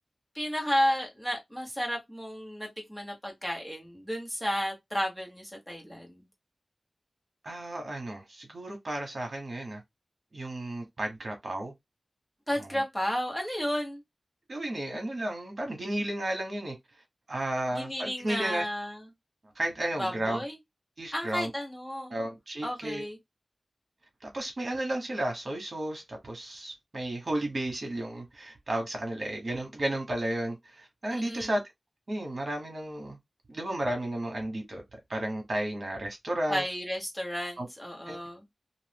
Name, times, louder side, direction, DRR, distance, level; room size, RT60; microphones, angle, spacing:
voice 1, 0.3-6.2 12.5-14.0 17.7-19.0 20.0-20.5 21.1-22.1 22.6-23.2 31.1-31.5 36.5-38.4, equal, 5° left, 1.3 m, -32 dB
voice 2, 7.4-9.8 10.3-11.7 12.6-12.8 14.5-16.7 17.3-18.6 19.5-20.4 21.0-21.5 22.1-23.0 24.2-31.6 32.1-33.2 33.5-34.8 35.1-36.6 37.6-37.7 38.1-38.2, right 1 dB, 60° right, 1.2 m, -33 dB
2.7 x 2.5 x 3.4 m
wide cardioid pair, 85°, 0 cm